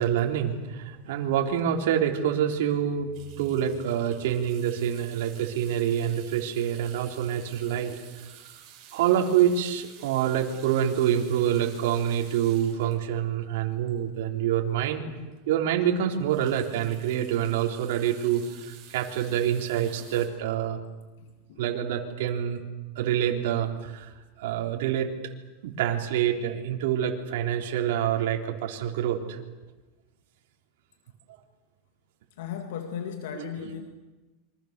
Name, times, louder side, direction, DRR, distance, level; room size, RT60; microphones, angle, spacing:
voice 1, 0.0-8.0 8.9-15.0 15.5-20.8 21.6-22.6 23.0-24.1 24.4-25.1 25.6-29.4 33.3-33.7, right 10 dB, 65° right, 2 dB, 3.9 m, -26 dB
sound 1, 3.1-14.4 14.9-15.0 15.3-15.4 15.8-20.3, right 10 dB, 35° right, 7.7 m, -51 dB
voice 2, 21.2-21.6 32.4-33.8, left 8 dB, 75° left, 5 dB, 2.3 m, -37 dB
28.0 x 25.0 x 6.9 m, 1.2 s
supercardioid pair, 165°, 0 cm